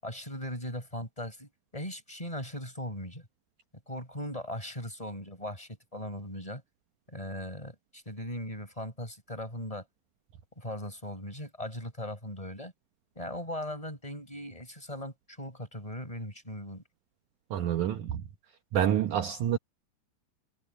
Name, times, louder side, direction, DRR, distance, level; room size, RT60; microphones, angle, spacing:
voice 1, 0.0-3.3 3.9-6.6 7.1-9.8 10.6-12.7 13.2-16.8, left 1 dB, 5° left, 7.4 m, -39 dB
voice 2, 17.5-18.2 18.7-19.6, right 10 dB, 85° right, 1.7 m, -27 dB
omnidirectional pair, 4.9 m